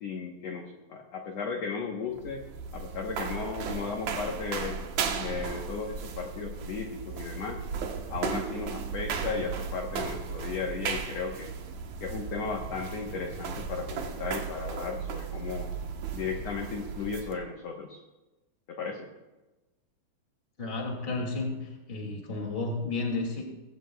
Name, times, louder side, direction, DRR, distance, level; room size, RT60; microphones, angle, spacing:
voice 1, 0.0-2.4 2.7-4.8 5.2-7.6 8.1-11.5 12.0-15.7 16.1-18.0 18.7-19.1, left 5 dB, 65° left, 1 dB, 1.7 m, -35 dB
sound 1, 2.1-17.4, right 6 dB, 65° right, 1.9 m, -36 dB
voice 2, 20.6-23.4, left 3 dB, 20° left, 1 dB, 1.7 m, -32 dB
20.0 x 15.5 x 2.3 m, 1.1 s
omnidirectional pair, 4.4 m